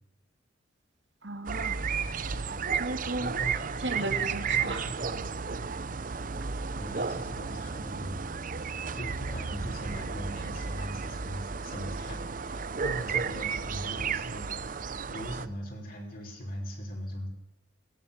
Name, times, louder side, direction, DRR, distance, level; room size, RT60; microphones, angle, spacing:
voice 1, 1.2-1.8 2.8-3.4 3.8-4.9, right 2 dB, 60° right, 6 dB, 2.7 m, -35 dB
sound 1, 1.4-15.5, right 5 dB, 45° right, 0.7 m, -33 dB
voice 2, 2.3-2.7 3.2-3.6 3.9-5.5 6.8-8.2 8.9-14.8 15.1-17.3, equal, 45° left, 0 dB, 5.4 m, -40 dB
22.5 x 18.5 x 7.4 m, 0.92 s
head